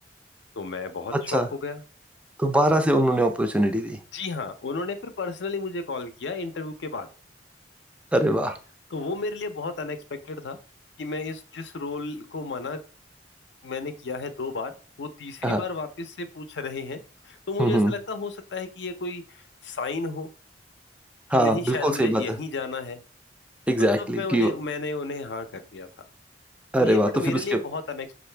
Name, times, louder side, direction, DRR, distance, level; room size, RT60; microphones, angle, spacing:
voice 1, 0.6-1.8 4.1-7.1 8.9-10.0 10.2-10.6 11.0-12.8 13.6-20.3 21.3-23.0 23.8-25.9 26.8-28.1, left 3 dB, 70° left, 9 dB, 0.5 m, -33 dB
voice 2, 2.4-4.0 8.1-8.6 15.4-15.6 17.6-17.9 21.3-22.4 23.7-24.5 26.7-27.6, right 1 dB, 5° right, 6 dB, 0.4 m, -22 dB
5.5 x 2.5 x 3.2 m, 0.37 s
head